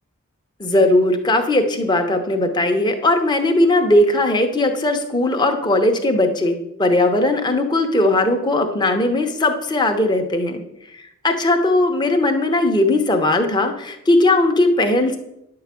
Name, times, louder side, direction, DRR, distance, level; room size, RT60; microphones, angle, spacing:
voice 1, 0.6-10.6 11.2-15.2, left 2 dB, 20° left, 4 dB, 0.9 m, -18 dB
10.0 x 4.8 x 7.5 m, 0.84 s
head